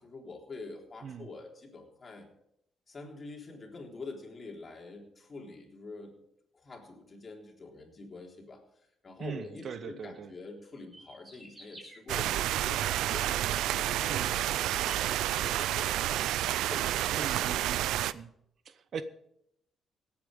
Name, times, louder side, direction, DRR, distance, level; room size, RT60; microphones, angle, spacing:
voice 1, 0.0-2.3 2.9-6.2 6.5-8.6 9.0-16.2 16.6-17.7, left 3 dB, 35° left, 3.7 m, -46 dB
voice 2, 9.2-10.3 14.1-14.3 17.1-18.3 18.7-19.0, right 7 dB, 60° right, 0.9 m, -41 dB
sound 1, 10.8-12.0 13.7-13.8 14.3-15.7, right 1 dB, 15° right, 4.7 m, -51 dB
sound 2, 12.1-18.1, right 13 dB, 90° right, 0.4 m, -30 dB
17.5 x 8.7 x 5.3 m
cardioid pair, 90°, 0 cm